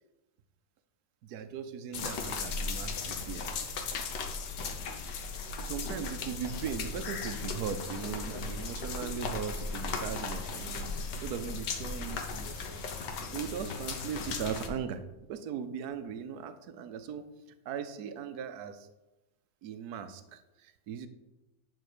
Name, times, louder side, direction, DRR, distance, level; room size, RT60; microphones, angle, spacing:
voice 1, 1.2-3.4 5.6-12.9 13.3-15.0 15.3-17.2 17.6-18.9 19.6-21.1, right 7 dB, 65° right, 10 dB, 1.2 m, -39 dB
sound 1, 1.9-14.7, left 4 dB, 70° left, 1.6 m, -37 dB
11.0 x 4.3 x 6.7 m, 1.0 s
omnidirectional pair, 2.0 m